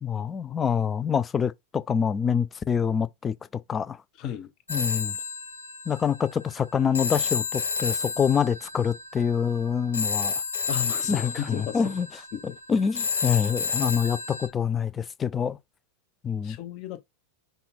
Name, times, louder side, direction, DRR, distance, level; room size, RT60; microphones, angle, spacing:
voice 1, 0.0-3.3 3.7-4.0 4.7-5.2 5.9-10.4 11.1-12.1 12.7-15.6 16.2-16.6, left 7 dB, 20° left, 0.4 m, -26 dB
voice 2, 4.2-4.5 10.7-11.8 12.3-12.6 16.4-17.0, left 10 dB, 40° left, 0.8 m, -34 dB
Telephone, 4.7-14.5, left 5 dB, 70° left, 1.0 m, -31 dB
5.4 x 2.3 x 4.1 m
figure-of-eight pair, 90°, 0 cm